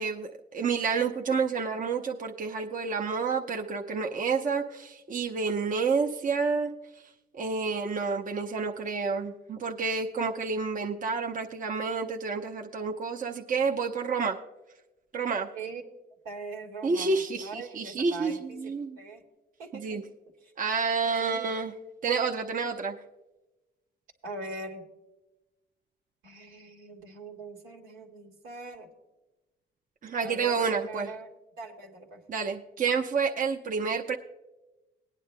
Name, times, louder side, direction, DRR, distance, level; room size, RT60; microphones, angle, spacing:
voice 1, 0.0-6.7 7.4-14.4 15.1-15.5 16.8-19.0 19.7-20.0 20.6-21.7 22.0-22.9 30.0-31.1 32.3-34.2, right 5 dB, 40° right, 2 dB, 0.8 m, -29 dB
voice 2, 16.2-19.2 19.6-20.0 20.4-20.5 21.2-21.6 22.8-22.9 24.2-24.8 26.2-28.9 30.2-31.3 31.6-32.2, right 3 dB, 85° right, 0 dB, 2.1 m, -42 dB
20.5 x 9.9 x 2.2 m, 1.1 s
cardioid pair, 90°, 20 cm